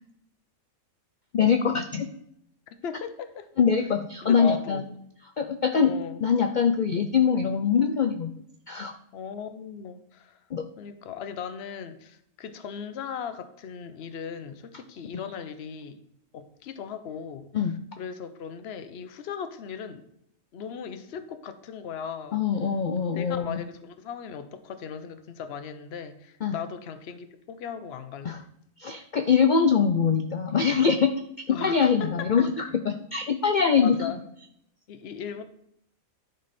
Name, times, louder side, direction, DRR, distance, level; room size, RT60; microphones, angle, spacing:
voice 1, 1.3-2.1 3.6-4.8 5.4-5.9 6.2-8.3 8.7-8.9 10.5-10.7 17.5-17.7 22.3-23.6 26.4-26.6 28.2-28.4 28.8-31.1 31.5-34.1, left 6 dB, 75° left, 8 dB, 0.4 m, -23 dB
voice 2, 2.7-3.5 3.8-3.9 4.2-4.8 5.8-6.2 9.1-10.4 10.8-16.0 16.3-20.1 20.5-22.4 23.0-28.4 31.5-32.5 33.7-34.2 34.9-35.4, left 7 dB, 55° left, 10 dB, 0.9 m, -38 dB
11.0 x 5.3 x 4.2 m, 0.75 s
omnidirectional pair, 1.5 m